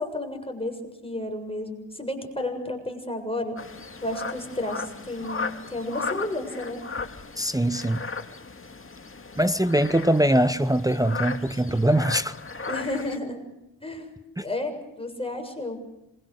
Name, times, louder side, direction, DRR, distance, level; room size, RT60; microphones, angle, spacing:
voice 1, 0.0-3.6 4.0-6.8 12.7-13.4 13.8-14.1 14.4-15.8, left 1 dB, 10° left, 7.0 m, -32 dB
sound 1, 3.6-13.2, left 4 dB, 25° left, 2.1 m, -36 dB
voice 2, 7.4-8.0 9.4-12.3 14.4-14.5, right 1 dB, 10° right, 0.8 m, -22 dB
26.5 x 23.0 x 6.6 m
cardioid pair, 60°, 46 cm